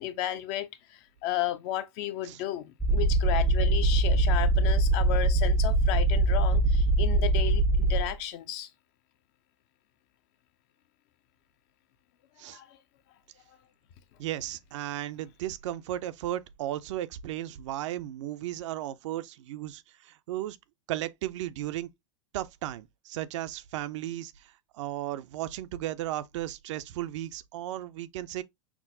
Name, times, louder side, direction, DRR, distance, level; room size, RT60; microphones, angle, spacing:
voice 1, 0.0-8.7 12.5-12.8, left 12 dB, 55° left, 0.6 m, -33 dB
sound 1, 2.8-8.1, right 2 dB, 5° left, 0.5 m, -23 dB
voice 2, 14.2-20.6 20.9-21.9 22.3-28.4, right 13 dB, 65° right, 0.4 m, -35 dB
5.9 x 2.0 x 2.5 m
hypercardioid pair, 110°, 16 cm